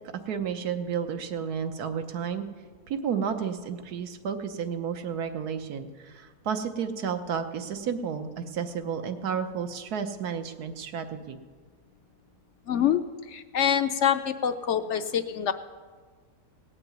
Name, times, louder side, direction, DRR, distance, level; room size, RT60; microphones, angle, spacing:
voice 1, 0.3-2.4 2.9-11.4, right 7 dB, 85° right, 8 dB, 1.5 m, -32 dB
voice 2, 12.7-13.0 13.3-15.5, left 9 dB, 65° left, 10 dB, 0.8 m, -25 dB
17.5 x 6.0 x 9.2 m, 1.5 s
omnidirectional pair, 1.6 m